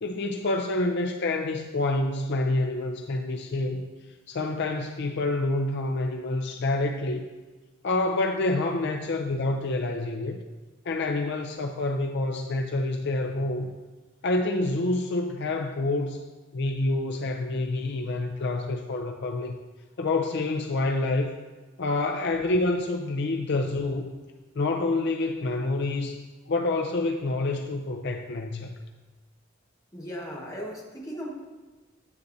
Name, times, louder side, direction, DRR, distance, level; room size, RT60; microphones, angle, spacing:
voice 1, 0.0-3.9 4.3-7.3 7.8-10.4 10.8-13.7 14.2-16.2 16.5-19.6 20.0-21.3 21.8-24.2 24.5-26.2 26.5-28.7, left 2 dB, 60° left, 3 dB, 0.5 m, -27 dB
voice 2, 29.9-31.3, equal, 15° left, -3 dB, 1.4 m, -37 dB
9.5 x 7.9 x 2.7 m, 1.2 s
head